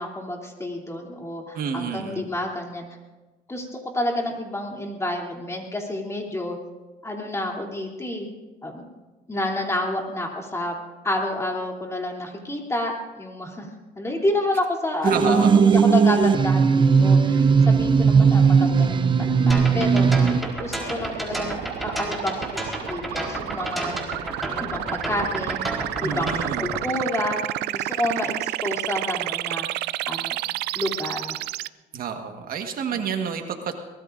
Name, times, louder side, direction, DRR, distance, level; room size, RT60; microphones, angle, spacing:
voice 1, 0.0-2.9 3.5-6.6 7.0-8.3 8.6-8.8 9.3-10.7 11.0-13.7 13.9-20.3 20.6-24.0 24.6-27.4 27.7-30.4 30.7-31.3, left 1 dB, 15° left, 0 dB, 3.1 m, -29 dB
voice 2, 1.5-2.3 15.0-15.6 26.0-26.7 31.9-33.8, right 6 dB, 60° right, 5 dB, 1.6 m, -29 dB
sound 1, 15.0-20.4, right 5 dB, 30° right, 0.7 m, -17 dB
sound 2, 17.5-31.7, right 16 dB, 80° right, 0.4 m, -31 dB
sound 3, 19.5-26.8, right 1 dB, ahead, 4.1 m, -31 dB
23.0 x 19.5 x 2.6 m, 1.2 s
cardioid pair, 110°, 17 cm